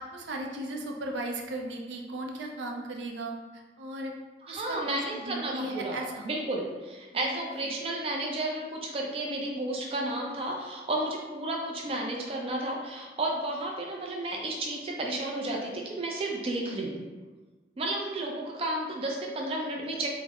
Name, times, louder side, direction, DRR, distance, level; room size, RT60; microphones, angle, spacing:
voice 1, 0.0-4.1 4.5-4.8 5.1-6.3 7.1-7.7, right 1 dB, 90° right, 1 dB, 0.5 m, -36 dB
voice 2, 4.4-17.0 17.8-20.1, right 1 dB, 30° right, -1 dB, 0.4 m, -32 dB
3.4 x 2.0 x 3.4 m, 1.3 s
head